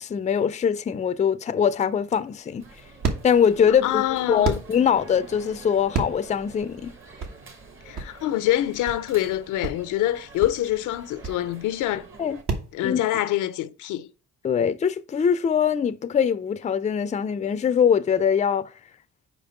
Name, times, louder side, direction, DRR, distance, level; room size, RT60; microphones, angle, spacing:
voice 1, 0.0-2.7 3.2-6.9 12.2-12.4 12.8-13.0 14.4-18.7, left 7 dB, 25° left, 0.4 m, -22 dB
sound 1, 1.9-12.7, right 4 dB, 65° right, 1.5 m, -33 dB
sound 2, 2.6-12.4, right 4 dB, 40° right, 1.4 m, -47 dB
voice 2, 3.8-4.6 7.9-12.0 12.7-14.1, left 13 dB, 85° left, 0.6 m, -25 dB
5.2 x 4.9 x 5.6 m
cardioid pair, 90°, 30 cm